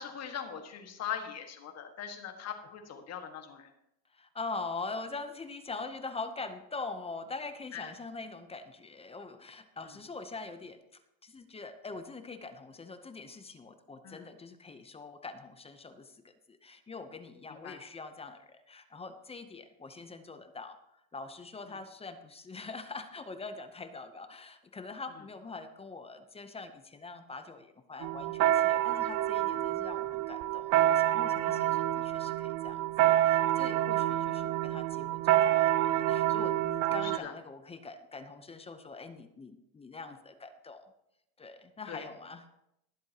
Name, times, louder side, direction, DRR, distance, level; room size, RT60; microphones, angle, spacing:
voice 1, 0.0-3.7 7.7-7.9 14.0-14.3 17.5-17.8 21.7-21.8 28.9-29.1 31.5-31.7 37.0-37.3 41.9-42.1, left 8 dB, 35° left, 5 dB, 1.6 m, -41 dB
voice 2, 4.1-10.8 11.2-20.8 21.1-32.8 33.1-40.9 41.4-42.5, left 3 dB, 15° left, 9 dB, 0.7 m, -43 dB
sound 1, 28.0-37.2, right 13 dB, 45° right, 0.5 m, -27 dB
20.5 x 7.6 x 2.9 m, 0.81 s
cardioid pair, 140°, 43 cm